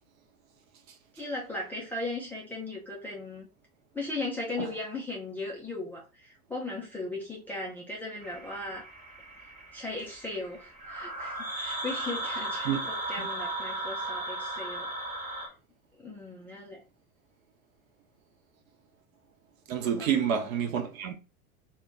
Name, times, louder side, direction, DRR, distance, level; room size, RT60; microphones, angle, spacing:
voice 1, 1.2-3.5 3.9-8.8 9.4-14.9 16.0-16.8 20.0-20.1, left 2 dB, 5° left, 0.3 m, -37 dB
sound 1, 8.2-15.5, right 1 dB, 20° right, 0.9 m, -36 dB
voice 2, 19.7-21.1, right 8 dB, 65° right, 0.8 m, -28 dB
2.2 x 2.2 x 3.6 m
figure-of-eight pair, 90°, 45 cm